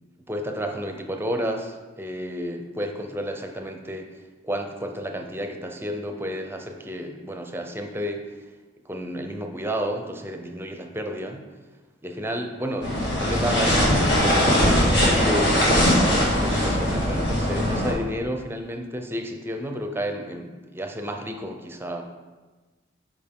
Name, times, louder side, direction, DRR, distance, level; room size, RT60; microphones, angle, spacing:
voice 1, 0.3-4.1 4.4-8.2 8.9-11.4 12.0-22.0, equal, 10° right, 4 dB, 0.5 m, -31 dB
sound 1, 12.8-17.9, equal, 65° left, 1.9 m, -20 dB
6.5 x 5.1 x 3.7 m, 1.3 s
head